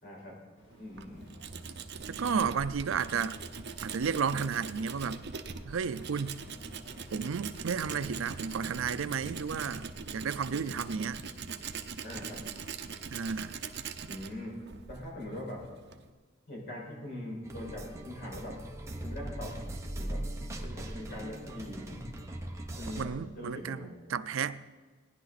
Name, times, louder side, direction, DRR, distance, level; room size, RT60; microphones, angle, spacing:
voice 1, 0.0-0.4 0.8-1.5 12.0-12.4 14.1-14.6 14.9-15.6 16.5-18.6 19.0-19.6 19.9-20.2 20.6-22.0 22.7-23.9, left 1 dB, 50° left, 5.1 m, -42 dB
Boat Water vehicle, 0.6-11.3, left 1 dB, 75° left, 1.9 m, -54 dB
Tools, 0.7-16.1, right 5 dB, 55° right, 0.8 m, -42 dB
voice 2, 2.1-3.3 3.8-5.2 5.6-6.4 7.1-11.2 13.1-13.6 23.0-24.7, right 6 dB, 75° right, 0.5 m, -33 dB
sound 1, 17.4-23.0, right 1 dB, 15° right, 1.1 m, -40 dB
18.5 x 10.5 x 4.1 m
head